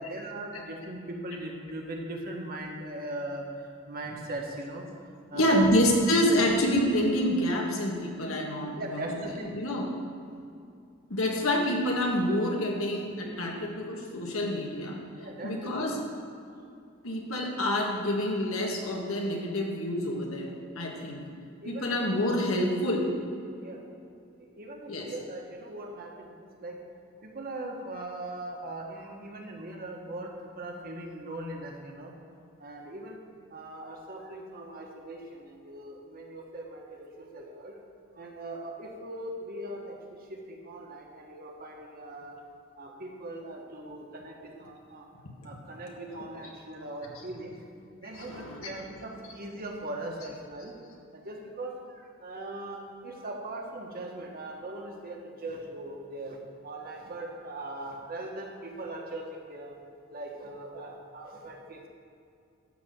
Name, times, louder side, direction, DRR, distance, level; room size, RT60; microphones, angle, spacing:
voice 1, 0.0-4.9 5.3-5.7 8.8-9.6 15.2-15.7 21.6-22.0 23.6-23.8 24.4-26.7 27.2-32.1 32.6-33.2 33.5-37.7 38.1-42.4 42.8-45.1 45.4-47.7 48.0-50.7 51.1-56.4 56.6-59.8 60.1-61.9, right 1 dB, 45° right, 0 dB, 1.5 m, -40 dB
voice 2, 5.3-9.2 9.5-9.9 11.1-15.0 15.4-16.0 17.0-21.2 21.7-23.1 24.9-25.1 47.2-47.3 48.0-48.8, left 1 dB, 90° left, 0 dB, 1.8 m, -27 dB
12.5 x 4.3 x 7.7 m, 2.5 s
head